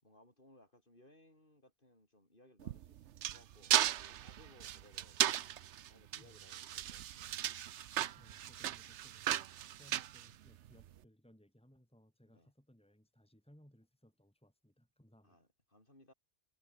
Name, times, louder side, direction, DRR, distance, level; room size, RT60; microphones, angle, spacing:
voice 1, 0.0-5.5 5.9-7.4 12.3-12.5 15.2-16.1, left 1 dB, 45° left, 7.3 m, -64 dB
sound 1, 2.6-10.9, right 11 dB, 75° right, 1.0 m, -36 dB
voice 2, 8.1-15.4, equal, 5° left, 4.5 m, -65 dB
omnidirectional pair, 1.2 m